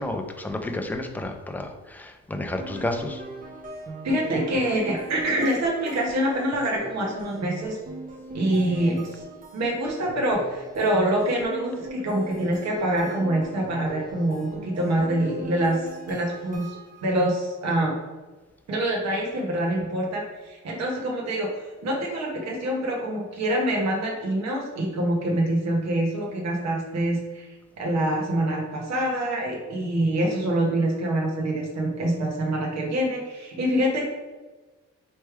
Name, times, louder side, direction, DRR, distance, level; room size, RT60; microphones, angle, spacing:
voice 1, 0.0-3.2, left 1 dB, 5° left, 4 dB, 0.4 m, -31 dB
sound 1, 2.5-17.2, right 2 dB, 30° right, 0.7 m, -41 dB
voice 2, 4.0-7.8 8.3-9.2 9.5-16.8 17.0-18.0 18.7-34.0, right 1 dB, 65° right, -1 dB, 1.1 m, -25 dB
3.2 x 3.2 x 4.6 m, 1.2 s
cardioid pair, 120°, 29 cm